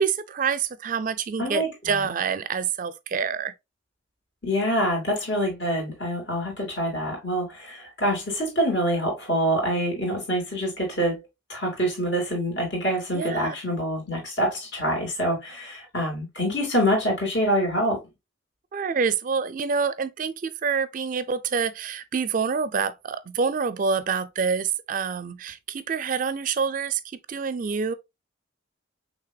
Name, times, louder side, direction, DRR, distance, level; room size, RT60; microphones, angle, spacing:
voice 1, 0.0-3.5 13.1-13.6 18.7-27.0 27.3-27.9, right 5 dB, 45° right, 0.4 m, -27 dB
voice 2, 1.4-2.1 4.4-11.2 11.5-18.0, equal, 60° left, 2.8 m, -26 dB
5.8 x 3.2 x 2.2 m
head